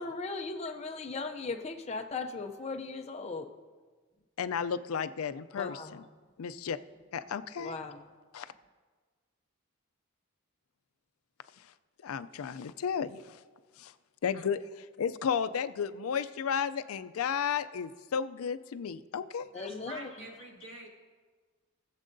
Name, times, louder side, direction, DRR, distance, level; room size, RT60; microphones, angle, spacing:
voice 1, 0.0-3.5 5.6-6.0 7.6-8.0 19.5-20.3, left 3 dB, 30° left, 3 dB, 0.5 m, -38 dB
voice 2, 4.4-6.0 6.4-6.8 7.1-7.8 8.3-8.5 12.0-13.4 13.8-13.9 14.2-14.6 15.0-19.5, left 7 dB, 85° left, 13 dB, 0.4 m, -33 dB
voice 3, 19.5-20.9, right 2 dB, 65° right, -2 dB, 2.1 m, -46 dB
19.0 x 7.4 x 2.6 m, 1.4 s
head